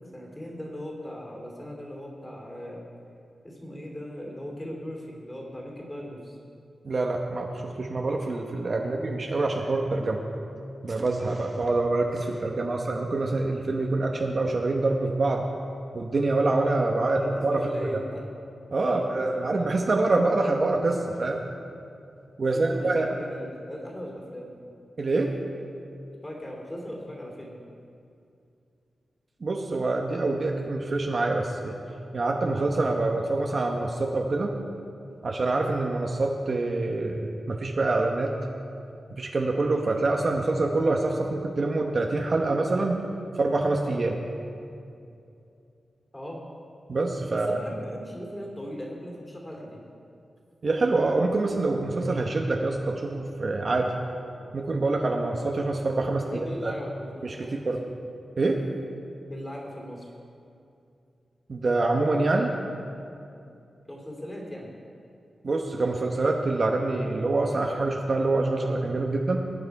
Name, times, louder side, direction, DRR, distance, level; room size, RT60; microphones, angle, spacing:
voice 1, 0.1-2.8 3.4-6.4 8.8-9.1 17.0-18.2 18.8-19.8 22.4-24.5 26.2-27.6 46.1-46.4 47.3-49.8 56.2-57.7 59.3-60.1 63.9-64.7, equal, 15° left, -1 dB, 2.9 m, -38 dB
voice 2, 6.8-10.2 10.8-15.5 15.9-17.7 18.7-21.4 22.4-23.1 25.0-25.3 29.4-31.8 32.1-34.5 35.2-38.4 39.1-43.0 43.4-44.2 46.9-47.6 50.6-53.9 54.5-56.3 56.6-56.7 57.2-57.8 58.4-58.6 61.5-62.5 65.4-69.4, right 2 dB, 40° right, 1 dB, 1.1 m, -26 dB
20.0 x 9.5 x 4.7 m, 2.6 s
wide cardioid pair, 145°, 0 cm